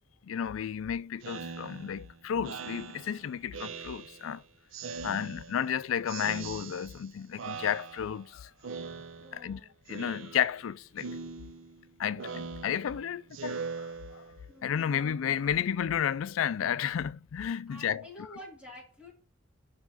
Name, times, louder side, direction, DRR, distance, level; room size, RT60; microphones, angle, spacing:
voice 1, 0.2-4.4 5.0-8.5 9.3-9.6 9.9-11.1 12.0-14.2 14.6-18.1, left 8 dB, 90° left, 0.4 m, -32 dB
Speech synthesizer, 1.2-4.4 4.7-5.7 6.1-7.1 7.4-8.3 8.6-9.5 9.9-10.7 11.0-14.5, right 5 dB, 80° right, 0.5 m, -42 dB
voice 2, 4.9-5.3 9.2-9.7 14.5-15.3 17.7-19.1, left 1 dB, 5° right, 2.2 m, -50 dB
5.7 x 4.7 x 5.8 m
head